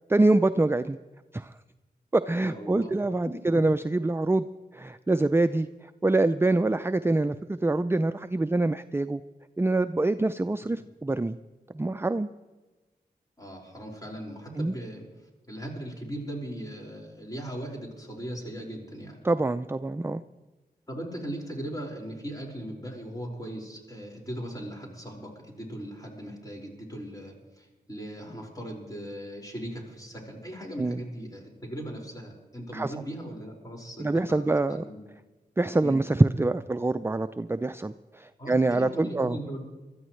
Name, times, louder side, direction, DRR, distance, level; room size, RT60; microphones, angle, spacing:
voice 1, 0.1-1.0 1.3-1.5 2.1-4.5 4.7-9.2 9.6-11.4 11.7-12.3 14.6-14.7 19.2-20.2 30.8-31.0 32.7-32.9 34.0-34.8 35.6-39.4, right 2 dB, 15° right, 11 dB, 0.4 m, -25 dB
voice 2, 2.4-2.9 3.2-3.6 10.6-10.7 13.4-15.1 15.5-19.2 20.9-35.0 35.8-36.0 38.4-39.7, right 1 dB, 20° left, -1 dB, 5.1 m, -39 dB
22.5 x 13.5 x 3.2 m, 1.2 s
cardioid pair, 50°, 17 cm